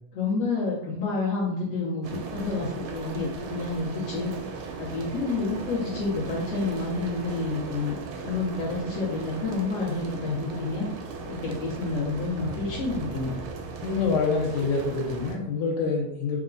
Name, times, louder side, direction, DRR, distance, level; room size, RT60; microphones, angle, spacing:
voice 1, 0.1-4.3 4.8-8.0 8.2-10.9 11.3-13.4, left 3 dB, 65° left, -8 dB, 1.8 m, -29 dB
sound 1, 2.0-15.4, right 4 dB, 85° right, 1.9 m, -37 dB
voice 2, 13.8-16.4, left 4 dB, 80° left, -2 dB, 1.9 m, -26 dB
4.8 x 2.1 x 2.4 m, 0.83 s
omnidirectional pair, 3.3 m